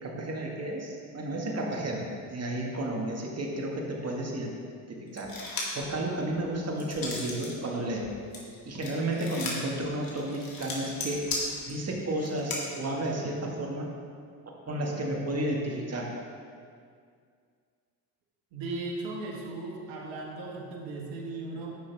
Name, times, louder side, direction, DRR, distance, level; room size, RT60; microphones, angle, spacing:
voice 1, 0.0-4.5 4.9-5.3 5.8-8.1 8.7-11.3 11.7-13.9 14.7-16.1, right 1 dB, 30° right, -1 dB, 1.9 m, -32 dB
sound 1, 5.2-5.9 6.3-7.5 7.9-12.6, left 3 dB, 45° left, 2.3 m, -37 dB
voice 2, 18.5-21.8, right 2 dB, 65° right, -1 dB, 1.7 m, -37 dB
10.5 x 6.7 x 3.5 m, 2.2 s
hypercardioid pair, 65°, 48 cm